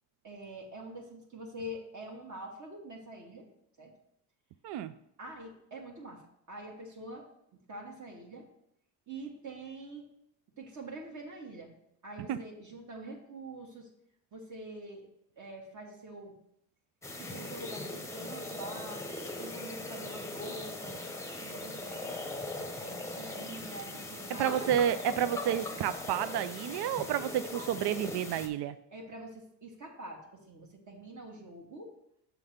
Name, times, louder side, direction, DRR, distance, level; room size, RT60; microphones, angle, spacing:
voice 1, 0.2-3.5 3.8-3.9 5.2-6.2 6.5-7.3 7.7-8.5 9.1-10.1 10.6-11.7 12.0-13.9 14.3-15.0 15.4-16.3 17.2-19.0 19.4-21.0 21.4-22.5 22.8-24.9 28.9-31.9, right 1 dB, 45° right, -1 dB, 1.5 m, -45 dB
sound 1, 17.0-28.5, left 2 dB, 5° left, 0.8 m, -40 dB
voice 2, 24.4-28.8, right 10 dB, 75° right, 13 dB, 0.5 m, -30 dB
6.8 x 3.8 x 6.3 m, 0.76 s
cardioid pair, 125°, 40 cm